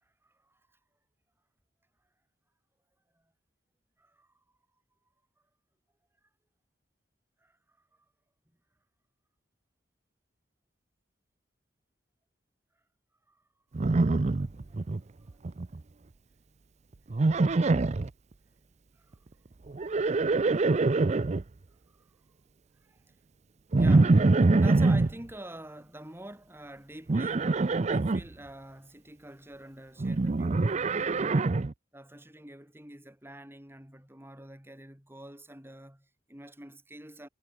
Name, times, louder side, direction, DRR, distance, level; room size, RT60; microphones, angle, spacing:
voice 1, 0.0-0.6 4.0-4.3 7.4-7.9 13.3-13.4 14.7-14.8 19.0-19.2 22.0-22.1 22.8-23.0 23.8-31.6 31.9-37.3, right 1 dB, 15° right, 5.1 m, -47 dB
Livestock farm animals working animals, 13.7-15.0 15.3-15.8 17.1-18.1 19.7-21.4 23.7-25.1 27.1-28.2 30.0-31.7, right 3 dB, 40° right, 0.5 m, -24 dB
head